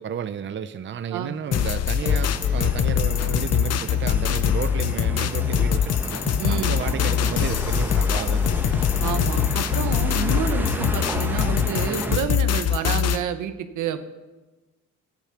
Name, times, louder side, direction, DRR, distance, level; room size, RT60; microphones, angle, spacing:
voice 1, 0.0-8.8, right 8 dB, 40° right, 12 dB, 0.6 m, -32 dB
sound 1, 1.5-13.2, left 9 dB, 55° left, 0.7 m, -23 dB
sound 2, 2.0-12.2, right 1 dB, 5° right, 1.3 m, -32 dB
voice 2, 6.4-6.8 9.0-14.0, right 9 dB, 80° right, 10 dB, 1.0 m, -29 dB
13.5 x 9.1 x 5.8 m, 1.2 s
cardioid pair, 90°, 30 cm